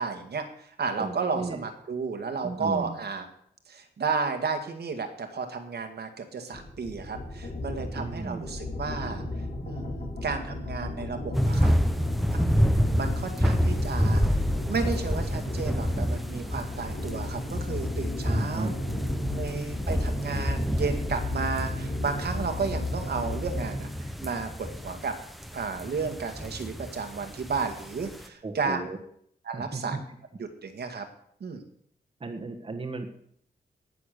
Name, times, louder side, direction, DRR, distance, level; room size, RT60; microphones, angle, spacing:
voice 1, 0.0-3.3 3.7-9.2 9.6-11.7 12.3-12.4 12.7-18.7 19.4-25.2 25.5-28.8 29.4-30.0 30.4-31.1 31.4-31.6, right 5 dB, 70° right, 5 dB, 1.9 m, -33 dB
voice 2, 1.0-1.6 2.4-3.0 7.9-8.5 18.2-18.8 28.4-29.0 29.5-30.0 32.2-33.1, right 3 dB, 30° right, 3 dB, 1.5 m, -35 dB
sound 1, 6.5-24.0, left 2 dB, 65° left, 3.4 m, -35 dB
sound 2, 11.3-28.3, equal, ahead, 0.9 m, -29 dB
18.5 x 7.1 x 6.7 m, 0.67 s
wide cardioid pair, 160°, 17 cm